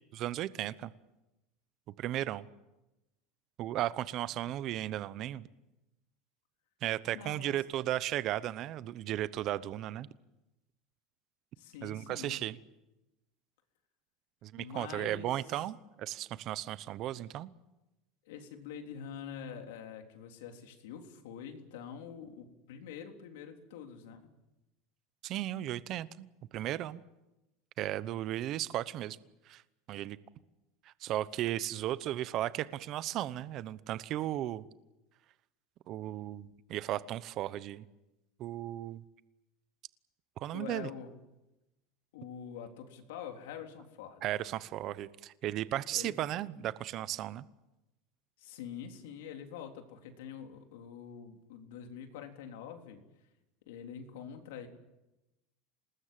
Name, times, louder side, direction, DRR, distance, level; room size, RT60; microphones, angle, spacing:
voice 1, 0.1-0.9 2.0-2.5 3.6-5.5 6.8-10.1 11.8-12.6 14.4-17.5 25.2-26.3 26.5-27.0 27.8-29.2 29.5-29.6 29.9-30.2 31.0-34.7 35.9-37.8 38.4-39.0 40.4-40.9 44.2-47.5, right 13 dB, 45° right, 16 dB, 0.9 m, -35 dB
voice 2, 4.3-4.6 7.1-7.6 11.6-12.4 14.6-15.6 18.3-24.3 40.5-41.1 42.1-44.2 45.9-46.2 48.4-53.0 53.7-54.7, left 8 dB, 85° left, 4 dB, 3.6 m, -46 dB
27.0 x 20.0 x 7.7 m, 0.98 s
supercardioid pair, 145°, 0 cm